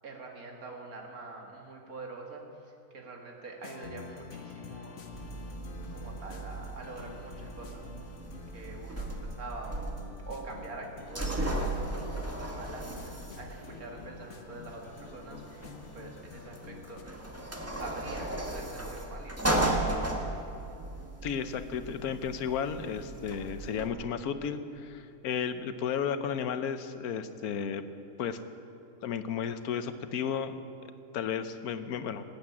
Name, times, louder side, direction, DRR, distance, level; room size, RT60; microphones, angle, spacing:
voice 1, 0.0-5.0 5.9-7.9 8.5-9.9 10.3-17.0 17.4-19.9, right 3 dB, 75° right, 0 dB, 2.4 m, -45 dB
sound 1, 3.6-17.0, left 6 dB, 55° left, 1.4 m, -48 dB
sound 2, 5.1-23.9, right 1 dB, 10° right, 1.4 m, -36 dB
voice 2, 21.2-27.8 28.2-28.4 29.0-30.5 31.1-32.2, left 7 dB, 80° left, 11 dB, 1.3 m, -33 dB
18.5 x 8.6 x 8.6 m, 2.8 s
omnidirectional pair, 1.5 m